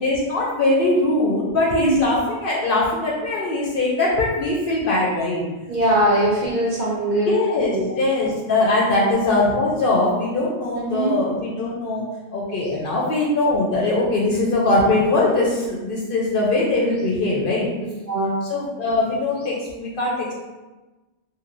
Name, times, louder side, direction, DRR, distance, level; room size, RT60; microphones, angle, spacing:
voice 1, 0.0-5.4 7.3-17.7 18.5-20.3, left 2 dB, 60° left, -4 dB, 0.7 m, -21 dB
voice 2, 5.7-7.4 7.7-8.0 10.7-11.2 18.1-18.3, right 1 dB, 50° right, -6 dB, 0.6 m, -21 dB
3.0 x 2.6 x 2.5 m, 1.2 s
omnidirectional pair, 1.2 m